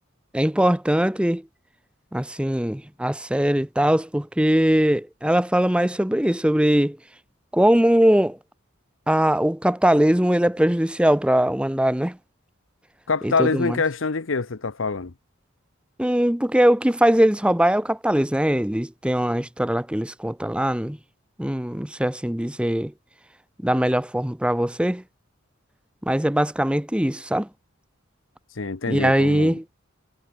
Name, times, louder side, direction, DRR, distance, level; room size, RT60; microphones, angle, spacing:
voice 1, 0.3-1.4 2.1-7.0 7.5-8.4 9.1-12.2 13.2-13.8 16.0-21.0 21.4-22.9 23.6-25.0 26.0-27.5 28.9-29.6, right 1 dB, 5° right, 0.7 m, -21 dB
voice 2, 13.1-15.1 28.6-29.6, left 4 dB, 70° left, 0.9 m, -25 dB
head